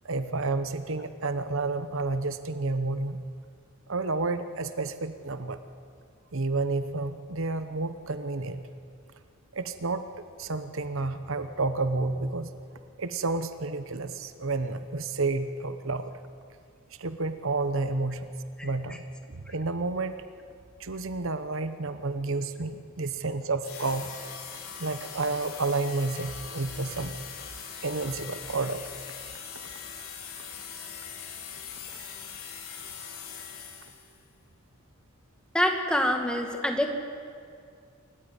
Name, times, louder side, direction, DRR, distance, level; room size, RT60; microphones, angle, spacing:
voice 1, 0.0-3.2 3.9-5.6 6.3-8.7 9.5-10.0 10.4-12.5 13.0-16.1 17.0-18.3 18.6-19.0 19.3-20.1 20.8-24.1 24.8-27.1 27.8-28.9 31.9-32.1, right 3 dB, 65° right, 11 dB, 1.0 m, -30 dB
sound 1, 23.6-34.2, left 7 dB, 75° left, 3.6 m, -41 dB
voice 2, 35.5-36.9, left 1 dB, 5° left, 3 dB, 2.0 m, -26 dB
27.0 x 14.5 x 9.9 m, 2.3 s
head